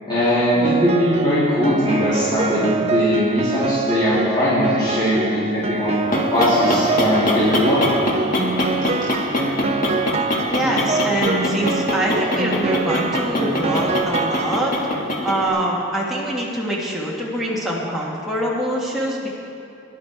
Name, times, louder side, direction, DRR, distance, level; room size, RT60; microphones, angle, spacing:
voice 1, 0.1-5.9 6.3-7.8, equal, 20° left, -12 dB, 3.2 m, -19 dB
Piano, 0.6-15.0, right 4 dB, 30° right, 0.4 m, -25 dB
sound 1, 5.8-15.5, left 1 dB, 40° left, 1.5 m, -24 dB
voice 2, 10.5-14.7 15.2-19.3, right 1 dB, ahead, -6 dB, 1.5 m, -24 dB
16.0 x 11.5 x 4.5 m, 2.8 s
head